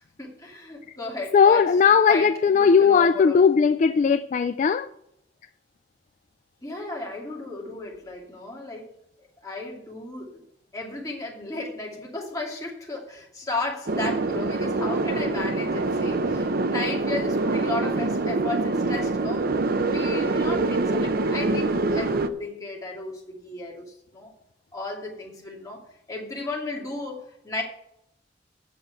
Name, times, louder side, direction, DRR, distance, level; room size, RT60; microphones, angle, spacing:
voice 1, 0.2-3.4 6.6-8.9 9.2-10.4 10.7-19.5 19.9-24.3 24.7-25.8 26.1-27.6, left 2 dB, 20° left, 2.6 m, -34 dB
voice 2, 1.3-4.9, left 6 dB, 45° left, 0.3 m, -18 dB
sound 1, 13.9-22.3, right 2 dB, 55° right, 0.7 m, -25 dB
8.4 x 6.6 x 8.1 m
head